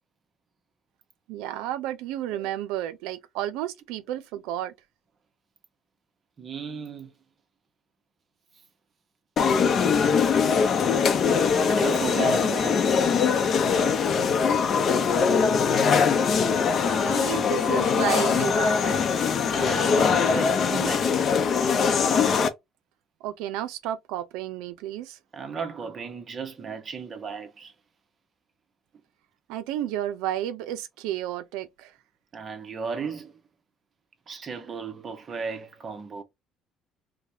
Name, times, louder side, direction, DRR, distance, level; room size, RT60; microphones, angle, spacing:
voice 1, 1.3-4.7 16.9-19.1 23.2-25.2 29.5-31.9, right 12 dB, 90° right, 0.5 m, -32 dB
voice 2, 6.4-7.1 11.6-13.1 13.7-14.5 19.5-21.3 25.3-27.7 32.3-33.4 34.3-36.2, right 5 dB, 35° right, 1.0 m, -35 dB
sound 1, 9.4-22.5, left 6 dB, 45° left, 0.7 m, -22 dB
4.8 x 2.2 x 2.7 m
cardioid pair, 110°, 0 cm